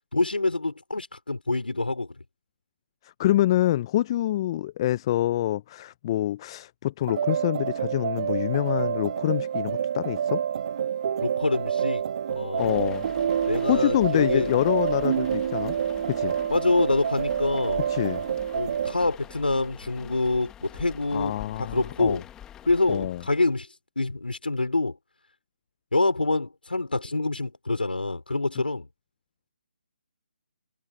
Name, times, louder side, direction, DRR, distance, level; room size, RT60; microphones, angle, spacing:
voice 1, 0.1-2.2 11.2-12.0 12.3-12.9 13.5-14.5 16.5-17.8 18.5-22.2 22.6-25.0 25.9-28.9, left 2 dB, 85° left, 3.7 m, -26 dB
voice 2, 3.0-10.4 12.6-13.0 13.6-15.7 16.1-16.3 17.9-18.2 21.1-22.2 22.9-23.2, left 13 dB, 30° left, 0.8 m, -26 dB
sound 1, 7.1-19.0, right 8 dB, 45° right, 1.6 m, -28 dB
sound 2, 12.6-23.6, left 10 dB, 10° left, 2.0 m, -46 dB
figure-of-eight pair, 145°, 5 cm